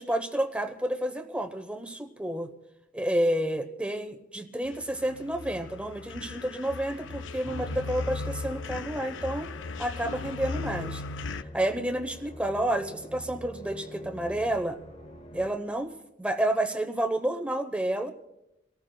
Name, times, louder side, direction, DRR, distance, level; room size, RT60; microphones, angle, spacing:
voice 1, 0.0-2.5 2.9-9.5 9.8-11.0 11.5-14.8 15.3-15.9 16.2-18.1, right 1 dB, 5° right, 8 dB, 0.8 m, -30 dB
sound 1, 4.6-11.4, left 4 dB, 65° left, 0.5 m, -37 dB
Musical instrument, 7.5-15.9, equal, 30° left, 0.8 m, -45 dB
30.0 x 18.5 x 2.2 m, 0.91 s
head